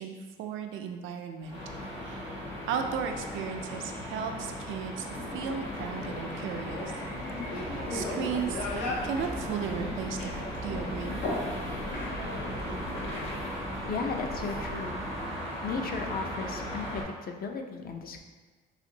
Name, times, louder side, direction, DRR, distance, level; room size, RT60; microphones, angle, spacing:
voice 1, 0.0-1.6 2.0-2.3 2.7-5.1 5.3-6.9 7.6-8.7 9.0-11.2, right 7 dB, 80° right, 5 dB, 0.4 m, -35 dB
sound 1, 1.4-17.0, equal, 70° left, 1.5 m, -38 dB
sound 2, 5.1-13.5, left 1 dB, 85° left, 0.7 m, -37 dB
sound 3, 7.5-15.2, right 2 dB, 15° right, 0.3 m, -46 dB
voice 2, 13.9-15.0 15.6-18.2, left 5 dB, 50° left, 4 dB, 0.4 m, -35 dB
4.1 x 2.5 x 2.7 m, 1.4 s
cardioid pair, 90°, 20 cm